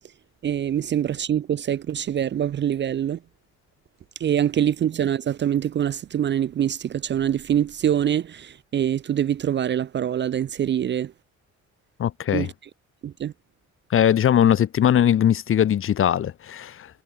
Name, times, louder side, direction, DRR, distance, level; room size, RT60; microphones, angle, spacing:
voice 1, 0.4-3.2 4.2-11.1 12.3-12.5 13.0-13.3, right 10 dB, 40° right, 0.4 m, -24 dB
voice 2, 12.0-12.5 13.9-16.9, left 10 dB, 45° left, 0.6 m, -20 dB
cardioid pair, 90°, 30 cm